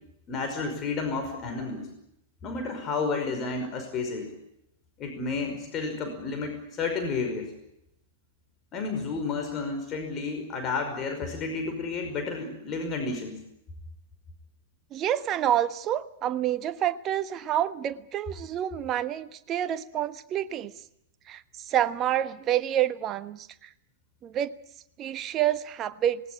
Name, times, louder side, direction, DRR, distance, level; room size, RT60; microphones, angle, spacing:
voice 1, 0.3-1.9 2.4-4.3 5.0-7.5 8.7-13.4, left 4 dB, 25° left, 4 dB, 5.3 m, -31 dB
voice 2, 14.9-20.7 21.3-23.7 24.2-24.5 25.0-26.2, right 11 dB, 30° right, 13 dB, 1.2 m, -28 dB
19.5 x 19.0 x 10.0 m, 0.80 s
figure-of-eight pair, 100°, 0 cm